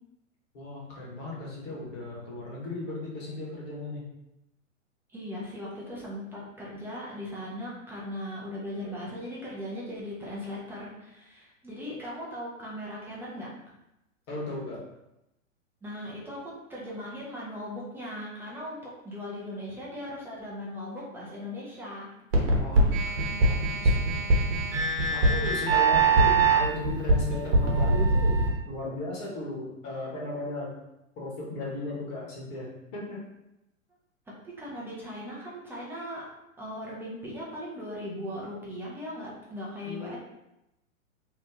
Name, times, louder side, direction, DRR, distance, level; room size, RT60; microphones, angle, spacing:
voice 1, 0.5-4.0 14.3-14.8 22.5-28.4 28.7-30.7 31.2-33.2 39.8-40.2, left 1 dB, 40° left, -3 dB, 1.2 m, -36 dB
voice 2, 5.1-13.5 15.8-22.1 34.4-36.3 36.6-40.2, left 1 dB, 5° right, -6 dB, 0.5 m, -38 dB
sound 1, 22.3-28.5, right 3 dB, 50° right, 1.1 m, -22 dB
3.0 x 2.3 x 3.5 m, 0.89 s
hypercardioid pair, 115°, 41 cm